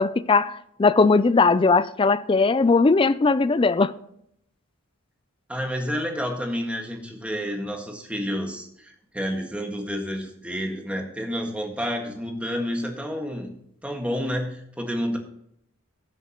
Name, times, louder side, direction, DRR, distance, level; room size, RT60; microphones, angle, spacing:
voice 1, 0.0-3.9, left 4 dB, 25° left, 0.4 m, -19 dB
voice 2, 5.5-13.5 13.8-15.2, equal, 5° right, 1.7 m, -29 dB
19.5 x 7.5 x 3.0 m
head